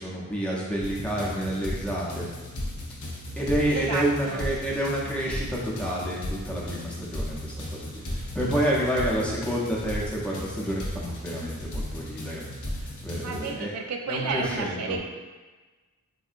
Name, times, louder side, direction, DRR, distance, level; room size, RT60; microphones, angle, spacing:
voice 1, 0.0-2.3 3.4-12.4 12.7-13.7 14.1-15.0, right 1 dB, 5° left, -5 dB, 0.5 m, -29 dB
sound 1, 0.8-13.5, left 1 dB, 75° left, 0.7 m, -35 dB
voice 2, 3.7-4.5 13.2-15.0, right 4 dB, 75° right, 2 dB, 0.4 m, -31 dB
3.7 x 2.6 x 2.4 m, 1.3 s
head